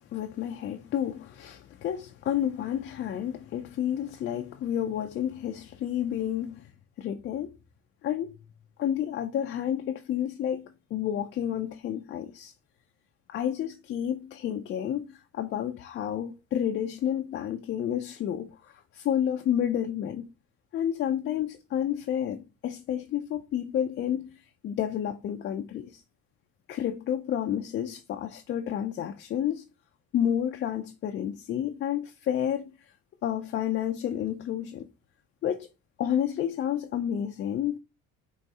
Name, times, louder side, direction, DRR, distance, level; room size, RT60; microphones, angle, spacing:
voice 1, 0.1-6.7 7.0-7.5 8.0-8.3 8.8-12.5 13.3-20.3 20.7-26.0 26.7-29.6 30.1-32.7 33.2-34.9 35.4-35.7 36.0-37.8, left 10 dB, 40° left, 0.4 m, -30 dB
4.7 x 3.0 x 2.7 m
cardioid pair, 130°, 29 cm